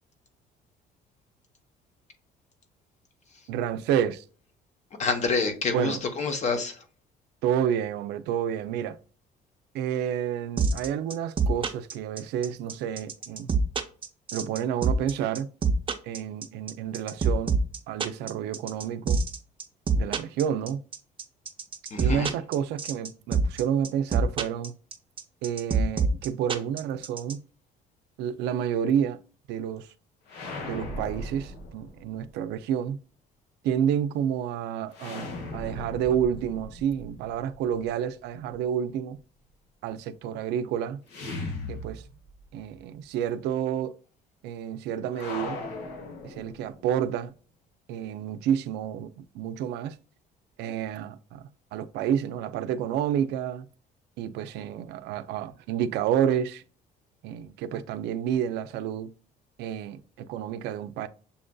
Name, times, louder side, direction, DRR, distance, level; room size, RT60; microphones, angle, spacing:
voice 1, 3.5-4.2 5.7-6.0 7.4-9.0 9.7-13.5 14.3-15.5 16.0-17.6 17.9-19.2 20.0-20.8 22.0-24.7 25.4-27.4 28.2-29.2 29.5-29.9 30.7-33.0 33.6-39.2 39.8-41.0 41.7-42.0 42.5-44.0 44.4-45.6 46.2-47.3 47.9-50.0 50.6-53.7 54.2-56.6 57.2-59.1 59.6-61.1, right 9 dB, 85° right, 0.4 m, -29 dB
voice 2, 5.0-6.8 21.9-22.3, left 4 dB, 45° left, 0.9 m, -27 dB
sound 1, 10.6-27.3, right 4 dB, 30° right, 0.6 m, -25 dB
sound 2, 30.3-32.2 34.9-37.9 41.1-42.5 42.8-42.9 45.1-46.9, left 2 dB, 85° left, 1.1 m, -38 dB
6.9 x 2.5 x 2.2 m
cardioid pair, 110°, 17 cm